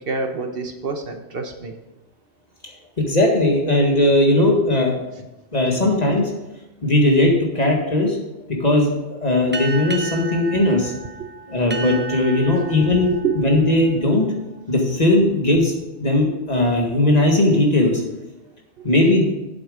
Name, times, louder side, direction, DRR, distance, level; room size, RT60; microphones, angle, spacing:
voice 1, 0.1-1.7 10.5-10.6 12.8-12.9 13.2-13.3 18.8-18.9, right 5 dB, 60° right, 5 dB, 1.1 m, -27 dB
voice 2, 3.0-5.0 5.5-6.3 6.8-8.2 8.6-10.9 11.5-14.3 14.7-15.7 16.0-18.0 18.8-19.3, left 1 dB, 35° left, 1 dB, 1.8 m, -18 dB
sound 1, 9.5-14.6, right 4 dB, 15° right, 0.3 m, -34 dB
8.0 x 7.7 x 4.9 m, 0.98 s
omnidirectional pair, 1.1 m